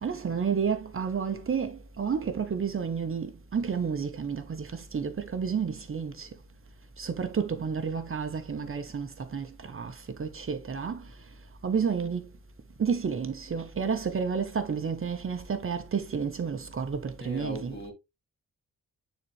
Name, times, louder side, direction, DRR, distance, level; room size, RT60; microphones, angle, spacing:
voice 1, 0.0-6.3 7.0-11.0 11.6-12.2 12.8-17.8, right 6 dB, 40° right, 0.9 m, -31 dB
voice 2, 17.2-17.9, equal, 35° left, 3.8 m, -39 dB
9.9 x 4.1 x 3.2 m
wide cardioid pair, 165°, 32 cm